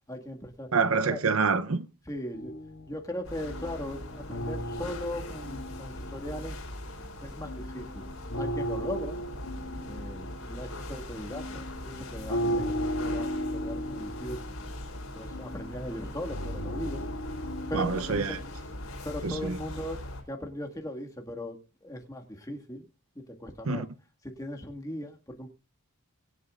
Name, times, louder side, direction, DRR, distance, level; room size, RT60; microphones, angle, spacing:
voice 1, 0.1-0.7 1.1-1.2 2.1-2.5 2.9-6.6 7.2-8.1 8.3-9.2 9.7-14.4 15.1-17.0 17.7-18.5 19.0-20.0 20.3-22.9 23.3-23.9 24.2-25.5, left 1 dB, 15° left, 1.9 m, -38 dB
voice 2, 0.7-1.9 17.7-18.4 19.2-19.6 23.7-23.9, right 4 dB, 70° right, 0.8 m, -26 dB
sound 1, 2.3-7.0 7.4-19.0, equal, 85° left, 3.5 m, -37 dB
sound 2, 3.2-20.2, left 1 dB, 65° left, 4.3 m, -41 dB
24.0 x 8.3 x 2.5 m
head